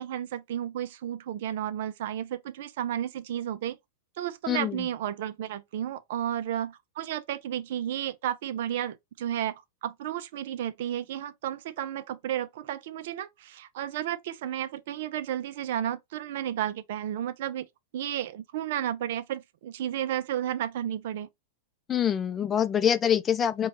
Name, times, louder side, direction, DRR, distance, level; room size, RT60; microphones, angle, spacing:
voice 1, 0.0-3.8 4.2-17.7 17.9-21.3, right 11 dB, 65° right, 0.5 m, -32 dB
voice 2, 21.9-23.7, left 9 dB, 25° left, 0.5 m, -25 dB
5.0 x 2.3 x 3.2 m
hypercardioid pair, 120°, 0 cm